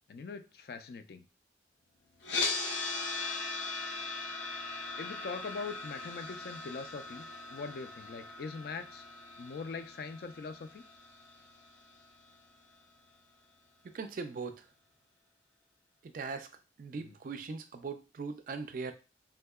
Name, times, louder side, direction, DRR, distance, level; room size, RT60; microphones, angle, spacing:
voice 1, 0.1-1.2 5.0-9.1 9.4-10.8 17.0-17.2, left 4 dB, 55° left, 10 dB, 0.3 m, -42 dB
sound 1, 2.2-12.3, left 3 dB, 80° left, 0.7 m, -39 dB
voice 2, 13.8-14.7 16.0-16.5 16.8-18.9, right 4 dB, 50° right, 9 dB, 0.3 m, -40 dB
3.5 x 2.7 x 2.3 m, 0.31 s
head